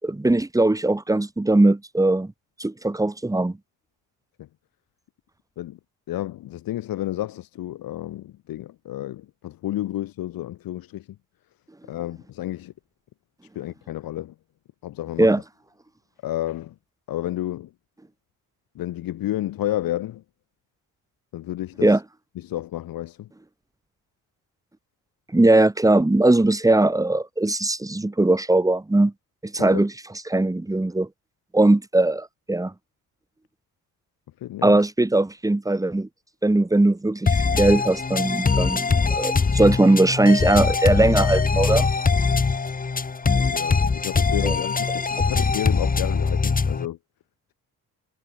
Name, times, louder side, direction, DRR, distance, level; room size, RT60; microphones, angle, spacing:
voice 1, 0.0-2.3 2.6-3.6 15.2-15.4 21.8-22.0 25.3-29.1 29.4-29.9 30.3-31.1 31.5-32.7 34.6-36.1 36.4-41.9 44.4-44.5, right 2 dB, 10° right, 5.1 m, -20 dB
voice 2, 6.1-11.2 11.9-12.7 13.5-14.3 14.8-15.3 16.2-16.8 17.1-17.7 18.7-20.2 21.3-22.0 22.4-23.3 29.6-29.9 34.4-34.8 43.5-47.0, left 14 dB, 90° left, 7.5 m, -31 dB
sound 1, 37.3-46.9, left 4 dB, 25° left, 4.3 m, -22 dB
cardioid pair, 145°, 34 cm